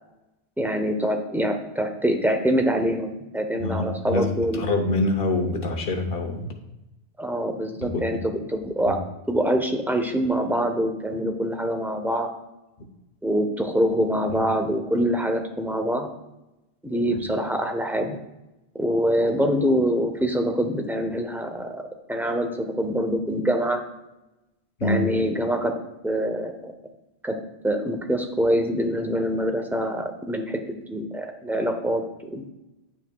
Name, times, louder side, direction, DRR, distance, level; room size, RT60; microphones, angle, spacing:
voice 1, 0.6-4.6 7.2-9.0 9.3-12.3 13.2-16.1 16.8-18.2 18.7-23.8 24.8-25.7 26.0-26.7 27.2-27.4 27.6-30.6 30.9-32.5, equal, 5° right, 5 dB, 0.4 m, -25 dB
voice 2, 3.6-4.3 4.5-6.5 7.8-8.2 8.9-9.0 24.8-25.0, left 2 dB, 65° left, 4 dB, 1.1 m, -25 dB
9.4 x 5.9 x 2.3 m, 0.96 s
omnidirectional pair, 1.1 m